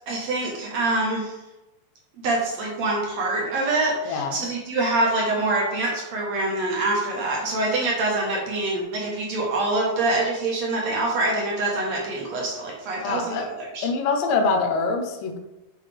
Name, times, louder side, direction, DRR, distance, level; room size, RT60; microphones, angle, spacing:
voice 1, 0.1-1.3 2.2-13.9, right 2 dB, 65° right, -2 dB, 1.8 m, -25 dB
voice 2, 4.1-4.4 13.0-13.5 13.8-15.4, left 4 dB, 70° left, 3 dB, 2.3 m, -24 dB
9.9 x 5.6 x 3.5 m, 1.0 s
omnidirectional pair, 5.1 m